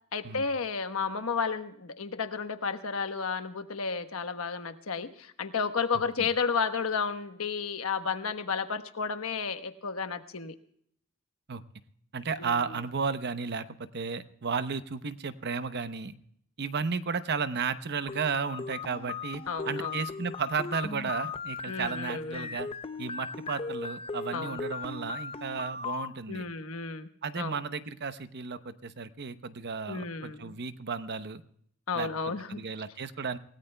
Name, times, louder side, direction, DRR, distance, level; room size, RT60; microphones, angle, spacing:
voice 1, 0.1-10.5 12.4-12.7 19.5-20.0 21.7-22.5 24.3-24.6 26.3-27.1 27.4-27.6 29.9-30.5 31.9-32.6, left 5 dB, 75° left, 9 dB, 1.2 m, -32 dB
voice 2, 12.1-16.1 16.6-22.7 23.0-26.4 27.2-31.4 31.9-32.1 32.5-33.4, right 5 dB, 50° right, 11 dB, 0.8 m, -33 dB
sound 1, 18.1-26.1, left 5 dB, 25° left, 0.6 m, -37 dB
28.0 x 17.5 x 2.2 m, 0.67 s
head